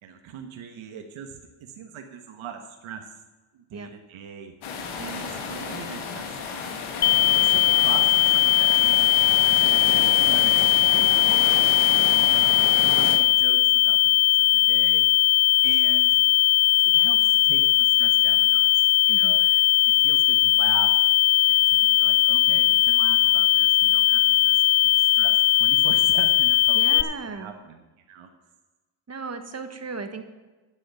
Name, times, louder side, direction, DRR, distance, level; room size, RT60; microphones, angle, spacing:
voice 1, 0.0-3.0 3.5-4.5 5.0-6.3 7.4-11.7 12.3-15.3 15.6-16.2 16.8-19.6 19.9-20.9 21.5-24.5 24.8-27.8 28.1-28.3, right 7 dB, 85° right, 4 dB, 1.3 m, -40 dB
sound 1, 4.6-13.2, left 5 dB, 90° left, 1.9 m, -32 dB
sound 2, 7.0-27.0, left 15 dB, 55° left, 0.5 m, -19 dB
voice 2, 19.1-19.4 26.7-27.5 29.1-30.2, right 4 dB, 30° right, 8 dB, 1.5 m, -36 dB
9.9 x 8.1 x 7.0 m, 1.2 s
cardioid pair, 85°, 47 cm